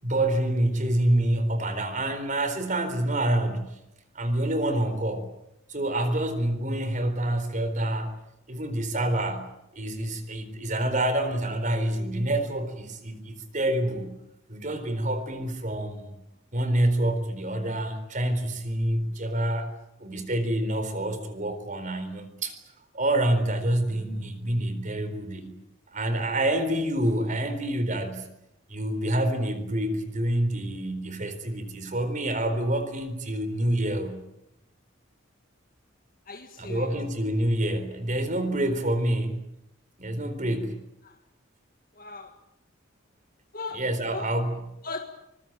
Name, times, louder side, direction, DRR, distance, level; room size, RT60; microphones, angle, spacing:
voice 1, 0.0-3.7 4.1-5.3 5.7-8.1 8.5-9.5 9.7-14.1 14.5-16.1 16.5-19.7 20.0-22.6 22.9-25.6 25.9-28.3 28.7-34.2 36.6-39.4 40.0-40.8 43.7-44.7, right 1 dB, 40° right, 10 dB, 4.1 m, -27 dB
voice 2, 36.3-36.9 41.0-41.1 42.0-42.3 43.5-43.8 44.1-44.3 44.8-45.0, left 3 dB, 45° left, 5 dB, 1.8 m, -37 dB
24.5 x 21.5 x 9.1 m, 0.85 s
head